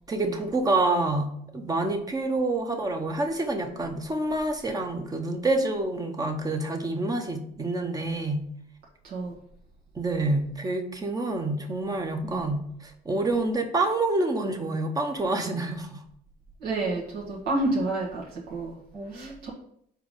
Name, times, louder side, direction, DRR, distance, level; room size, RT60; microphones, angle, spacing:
voice 1, 0.1-8.5 9.9-16.0 18.9-19.5, right 2 dB, 20° right, 5 dB, 0.9 m, -27 dB
voice 2, 9.0-9.3 12.2-12.5 16.6-18.8 19.1-19.5, right 2 dB, 75° right, -4 dB, 1.6 m, -30 dB
4.7 x 3.9 x 5.2 m, 0.69 s
cardioid pair, 110°, 17 cm